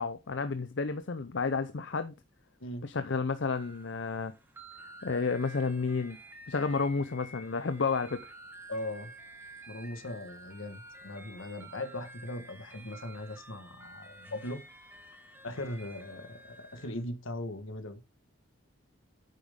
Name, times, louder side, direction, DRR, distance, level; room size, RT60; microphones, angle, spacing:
voice 1, 0.0-2.1 2.8-4.3 5.0-6.2 6.5-8.3, left 4 dB, 65° left, 0.6 m, -31 dB
swmikolaj leroymerlin, 3.5-17.0, right 2 dB, 10° right, 1.2 m, -51 dB
voice 2, 8.7-9.1 9.7-14.6 15.4-18.0, left 1 dB, 80° left, 1.4 m, -39 dB
9.2 x 7.1 x 3.6 m
head